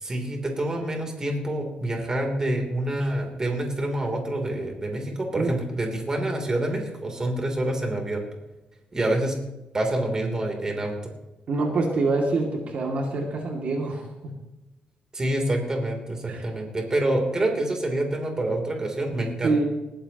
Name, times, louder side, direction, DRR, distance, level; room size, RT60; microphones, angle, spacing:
voice 1, 0.0-8.2 8.9-9.3 9.7-11.1 15.1-19.6, right 1 dB, 25° right, 2 dB, 3.3 m, -27 dB
voice 2, 11.5-14.3 16.3-16.5 19.4-19.6, right 3 dB, 55° right, 1 dB, 2.4 m, -26 dB
20.0 x 15.0 x 3.0 m, 0.99 s
cardioid pair, 140°, 3 cm